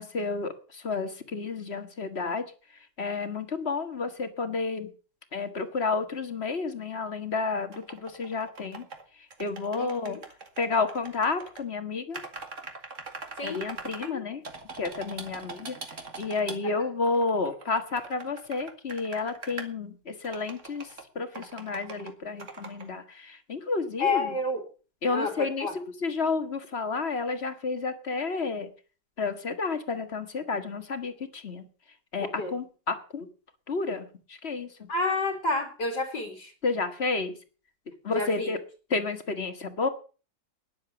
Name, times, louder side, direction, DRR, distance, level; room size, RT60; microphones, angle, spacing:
voice 1, 0.0-2.4 3.0-4.9 5.3-8.9 9.4-10.2 10.6-12.2 13.4-14.4 14.7-15.8 16.2-20.9 21.2-24.3 25.0-28.7 29.2-31.7 32.1-33.3 33.7-34.9 36.6-37.4 38.0-38.6 38.9-39.9, left 4 dB, 35° left, 9 dB, 1.7 m, -31 dB
sound 1, 7.7-9.0 9.3-11.6 12.1-14.1 14.4-16.6 17.0-19.7 20.2-21.0 21.3-22.1 22.4-22.9, right 4 dB, 40° right, 2.3 m, -42 dB
voice 2, 9.8-10.2 13.4-13.7 14.0-14.2 24.0-24.6 25.1-25.7 32.2-32.5 34.9-36.5 38.1-38.5, left 3 dB, 70° left, 3 dB, 3.1 m, -30 dB
13.0 x 10.5 x 7.0 m, 0.38 s
omnidirectional pair, 2.0 m